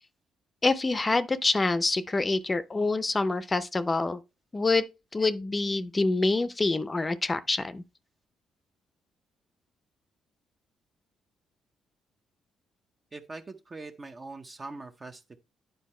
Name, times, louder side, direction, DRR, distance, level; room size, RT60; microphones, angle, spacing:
voice 1, 0.6-4.2 4.5-4.8 5.1-7.8, left 3 dB, 25° left, 0.6 m, -26 dB
voice 2, 13.1-15.4, right 3 dB, 30° right, 0.7 m, -42 dB
9.3 x 4.5 x 4.3 m
cardioid pair, 90°, 0 cm